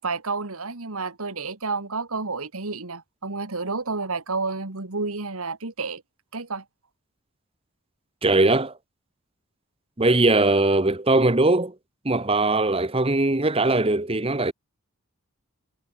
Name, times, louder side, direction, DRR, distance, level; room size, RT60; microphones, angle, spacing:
voice 1, 0.0-6.0 6.3-6.6, right 4 dB, 80° right, 2.0 m, -30 dB
voice 2, 8.2-8.7 10.0-11.7 12.0-14.5, right 2 dB, 25° right, 1.2 m, -20 dB
head